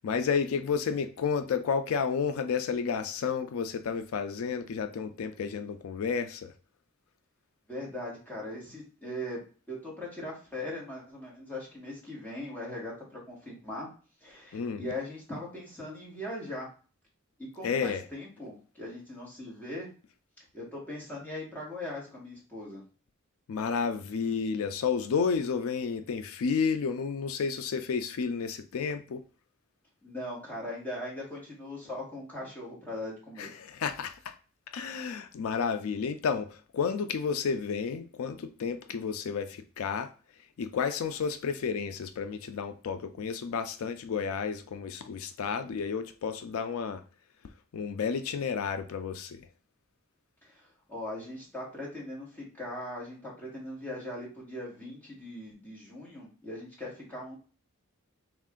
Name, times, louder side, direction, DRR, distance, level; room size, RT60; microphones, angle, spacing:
voice 1, 0.0-6.5 14.5-14.8 17.6-18.0 23.5-29.2 33.4-34.4 34.7-47.0 47.7-49.4, left 6 dB, 80° left, 0.4 m, -31 dB
voice 2, 7.7-9.4 9.7-13.9 14.2-16.7 17.4-19.9 20.5-22.8 30.0-33.5 50.4-57.4, left 1 dB, 10° left, 1.4 m, -40 dB
3.5 x 2.5 x 3.6 m
head